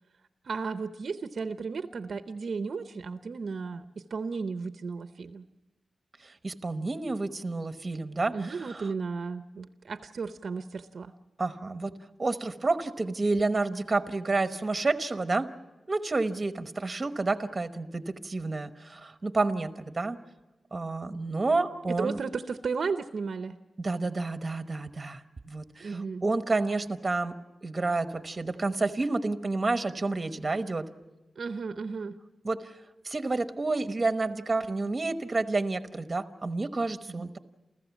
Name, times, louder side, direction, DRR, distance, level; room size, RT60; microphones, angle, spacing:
voice 1, 0.4-3.8 4.1-5.4 8.3-11.1 21.9-23.6 25.8-26.2 31.4-32.2 37.2-37.3, right 4 dB, 60° right, 9 dB, 0.7 m, -34 dB
voice 2, 6.2-8.9 11.4-11.9 12.2-15.5 15.9-20.2 20.7-22.2 23.8-30.9 32.4-32.8 33.0-37.4, right 3 dB, 25° right, 9 dB, 1.0 m, -30 dB
28.5 x 15.0 x 7.2 m, 1.1 s
wide cardioid pair, 135°, 0 cm